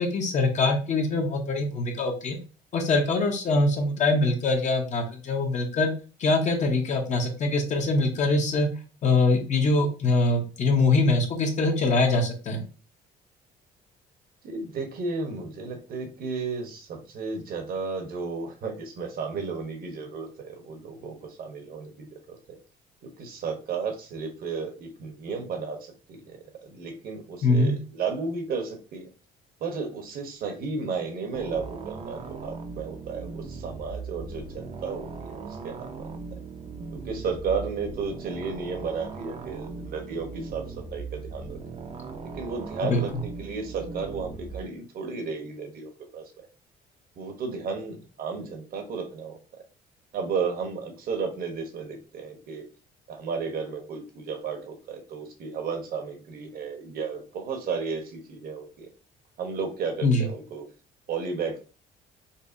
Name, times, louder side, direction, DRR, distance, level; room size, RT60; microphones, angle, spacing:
voice 1, 0.0-2.4 2.7-5.9 6.2-8.7 9.0-12.6 27.4-27.7 42.8-43.0 60.0-60.3, left 2 dB, 45° left, 3 dB, 0.8 m, -23 dB
voice 2, 14.4-22.6 23.0-29.1 29.6-36.2 36.9-40.6 40.9-41.6 42.3-46.2 47.2-49.4 50.1-52.6 53.1-58.9 59.4-60.6 61.1-61.6, right 5 dB, 60° right, 4 dB, 1.0 m, -33 dB
sound 1, 31.3-44.6, right 4 dB, 35° right, 0.6 m, -39 dB
5.3 x 2.1 x 2.6 m, 0.35 s
cardioid pair, 110°, 17 cm